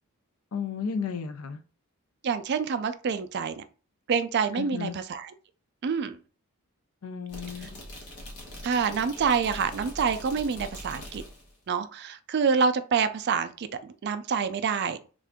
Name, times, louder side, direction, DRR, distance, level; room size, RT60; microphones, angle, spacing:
voice 1, 0.5-1.6 4.5-4.9 7.0-7.7, left 6 dB, 70° left, 0.5 m, -33 dB
voice 2, 2.2-3.6 4.1-5.3 5.8-6.2 8.6-11.2 11.7-15.1, right 6 dB, 50° right, 0.3 m, -27 dB
sound 1, 7.3-11.5, equal, 85° left, 1.3 m, -42 dB
3.6 x 2.4 x 3.5 m
head